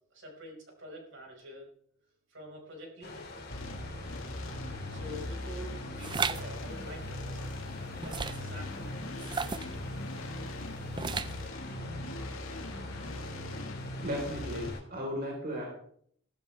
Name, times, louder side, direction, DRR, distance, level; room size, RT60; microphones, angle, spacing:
voice 1, 0.1-1.7 2.3-3.2 4.9-7.7 8.0-9.1, equal, 60° right, 0 dB, 5.1 m, -47 dB
sound 1, 3.0-14.8, left 2 dB, 50° left, 3.0 m, -46 dB
sound 2, 3.5-14.7, left 1 dB, 75° left, 1.9 m, -40 dB
sound 3, 6.0-6.4 8.0-8.5 9.2-9.7 11.0-11.5, right 5 dB, 20° right, 0.4 m, -33 dB
voice 2, 14.0-15.7, equal, 45° right, -2 dB, 4.0 m, -35 dB
16.0 x 14.5 x 3.4 m, 0.62 s
head